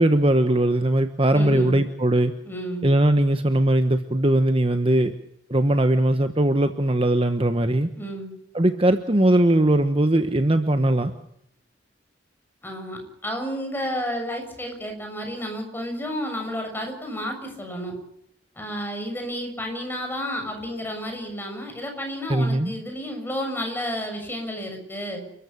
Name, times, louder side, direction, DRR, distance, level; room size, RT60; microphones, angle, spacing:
voice 1, 0.0-2.3 2.8-5.1 5.5-7.9 8.5-11.1 22.3-22.7, right 1 dB, 30° right, 8 dB, 1.1 m, -20 dB
voice 2, 1.3-1.8 2.4-2.9 8.0-8.3 12.6-17.9 18.6-25.2, equal, 10° left, 3 dB, 7.1 m, -31 dB
29.5 x 14.0 x 8.6 m, 0.76 s
head